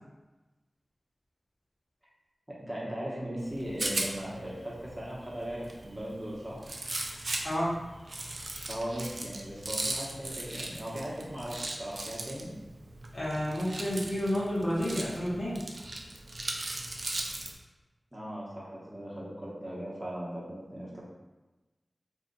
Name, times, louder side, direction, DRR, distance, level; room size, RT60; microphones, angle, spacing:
voice 1, 2.5-6.6 8.6-12.5 18.1-21.0, equal, 20° right, -6 dB, 1.0 m, -38 dB
Rattle, 3.4-17.5, right 2 dB, 60° right, 0.4 m, -38 dB
voice 2, 7.4-7.8 13.1-15.6, equal, 55° left, -7 dB, 1.1 m, -30 dB
2.7 x 2.4 x 3.9 m, 1.1 s
wide cardioid pair, 80°, 0 cm